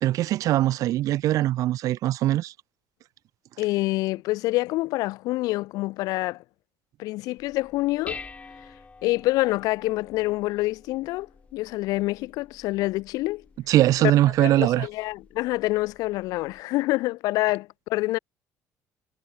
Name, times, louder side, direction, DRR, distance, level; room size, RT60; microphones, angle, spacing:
voice 1, 0.0-2.5 13.7-14.9, right 14 dB, 65° right, 0.5 m, -21 dB
voice 2, 3.6-6.4 7.0-8.2 9.0-13.4 14.0-14.1 14.4-18.2, left 19 dB, 80° left, 2.3 m, -26 dB
Dishes pots and pans, 7.4-16.6, left 3 dB, 20° left, 5.4 m, -48 dB
cardioid pair, 100°, 6 cm